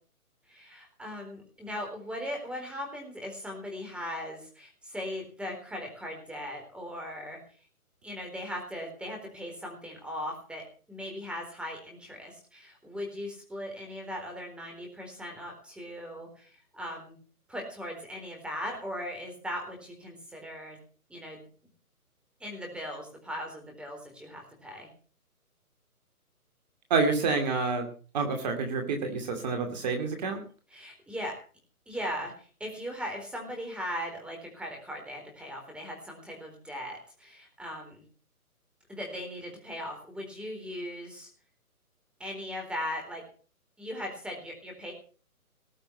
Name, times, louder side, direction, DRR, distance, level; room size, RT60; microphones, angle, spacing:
voice 1, 0.5-7.4 8.0-17.2 17.5-20.8 21.1-21.4 22.4-24.9 30.7-31.3 31.9-38.0 38.9-41.3 42.2-43.2 43.8-44.9, equal, ahead, 1 dB, 4.0 m, -39 dB
voice 2, 26.9-27.9 28.1-30.4, right 4 dB, 30° right, 4 dB, 2.5 m, -28 dB
19.0 x 6.8 x 8.2 m, 0.39 s
figure-of-eight pair, 150°, 45 cm